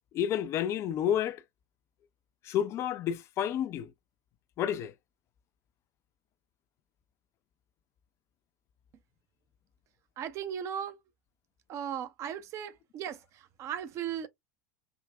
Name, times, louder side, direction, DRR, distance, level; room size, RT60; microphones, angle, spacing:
voice 1, 0.1-1.4 2.4-3.9 4.6-4.9, left 9 dB, 35° left, 0.4 m, -30 dB
voice 2, 10.2-11.0 11.7-14.3, right 9 dB, 35° right, 0.6 m, -37 dB
3.6 x 2.1 x 2.3 m
figure-of-eight pair, 80°, 8 cm